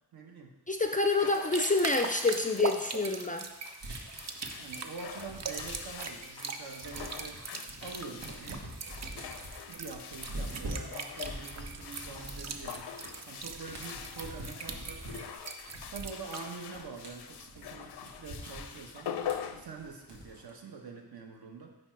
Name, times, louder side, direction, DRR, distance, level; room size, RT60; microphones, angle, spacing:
voice 1, 0.1-0.5 4.6-7.4 7.8-8.6 9.7-12.9 13.3-15.4 15.9-19.1 19.5-21.8, right 4 dB, 70° right, 2 dB, 1.1 m, -45 dB
voice 2, 0.7-3.5, left 3 dB, 20° left, 5 dB, 0.4 m, -27 dB
sound 1, 0.9-20.5, left 8 dB, 80° left, 0.5 m, -45 dB
sound 2, 1.3-16.5, right 5 dB, 45° right, 0.6 m, -42 dB
sound 3, 3.8-6.2 6.6-20.5, right 1 dB, 85° right, 1.5 m, -45 dB
9.5 x 3.2 x 4.5 m, 1.0 s
wide cardioid pair, 120°, 39 cm